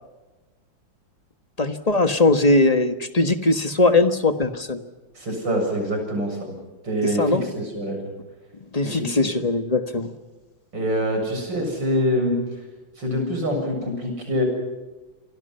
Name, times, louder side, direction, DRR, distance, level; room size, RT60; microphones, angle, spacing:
voice 1, 1.6-4.8 7.0-7.4 8.7-10.1, left 2 dB, 20° left, 9 dB, 1.3 m, -20 dB
voice 2, 5.1-6.5 6.8-8.0 8.8-9.3 10.7-12.4 13.0-14.4, equal, 60° right, 3 dB, 8.2 m, -25 dB
29.0 x 24.5 x 5.7 m, 1.1 s
omnidirectional pair, 2.2 m